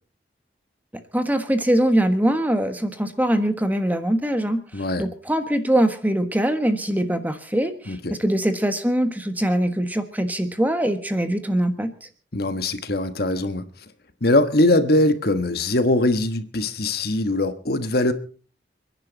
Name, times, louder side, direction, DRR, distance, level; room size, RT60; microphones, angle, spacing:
voice 1, 1.1-11.9, right 1 dB, 10° right, 1.4 m, -22 dB
voice 2, 4.7-5.0 7.9-8.2 12.3-13.6 14.2-18.1, left 1 dB, 55° left, 1.4 m, -21 dB
29.5 x 10.5 x 4.0 m
head